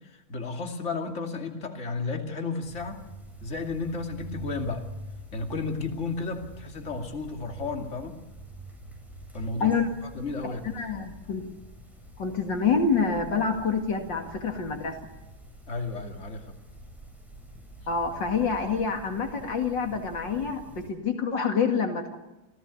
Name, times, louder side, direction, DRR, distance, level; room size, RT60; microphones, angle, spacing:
voice 1, 0.0-3.0 3.4-4.8 5.3-8.2 9.3-9.8 10.0-10.7 15.7-16.6, left 4 dB, 35° left, 4 dB, 2.8 m, -33 dB
sound 1, 2.6-20.9, right 1 dB, ahead, 7.2 m, -46 dB
voice 2, 10.4-11.5 12.2-15.0 17.9-22.2, left 5 dB, 65° left, 4 dB, 2.8 m, -27 dB
27.5 x 17.5 x 8.4 m, 1.0 s
omnidirectional pair, 2.2 m